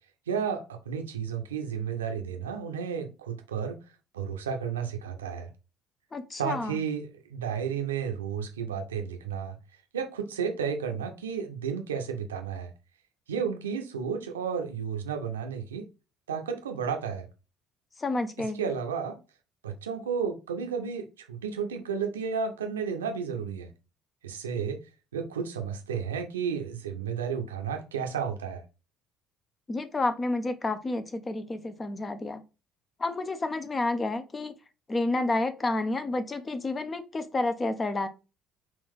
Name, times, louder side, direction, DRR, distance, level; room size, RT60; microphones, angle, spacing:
voice 1, 0.3-3.8 4.1-5.5 6.3-9.6 9.9-12.7 13.3-15.9 16.3-17.3 18.6-19.2 19.6-23.7 24.2-24.8 25.1-28.6, right 6 dB, 80° right, 0.6 m, -32 dB
voice 2, 6.1-6.8 18.0-18.6 29.7-32.4 33.0-34.5 34.9-38.1, left 2 dB, 25° left, 0.6 m, -30 dB
3.7 x 2.5 x 3.5 m
figure-of-eight pair, 55°, 0 cm